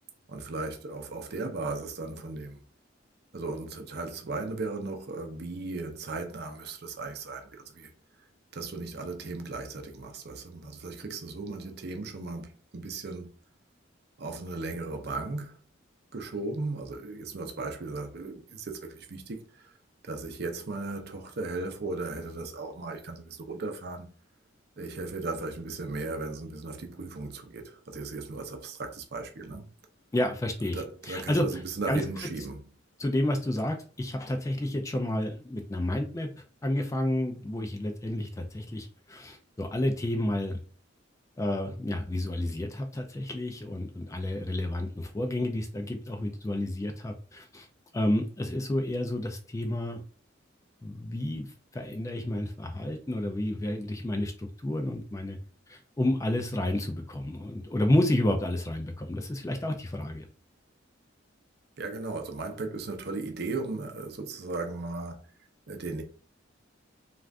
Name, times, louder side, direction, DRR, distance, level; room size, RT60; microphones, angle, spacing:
voice 1, 0.3-2.6 3.3-7.9 8.5-13.3 14.2-15.6 16.1-19.7 20.0-24.1 24.8-29.7 30.7-32.7 61.8-65.3 65.7-66.0, right 3 dB, 55° right, 0.6 m, -36 dB
voice 2, 30.1-31.5 31.9-32.0 33.0-36.3 36.6-40.6 41.4-47.7 47.9-50.0 50.8-51.5 51.7-55.4 55.7-60.3, left 1 dB, 15° left, 0.3 m, -30 dB
2.4 x 2.4 x 3.3 m
head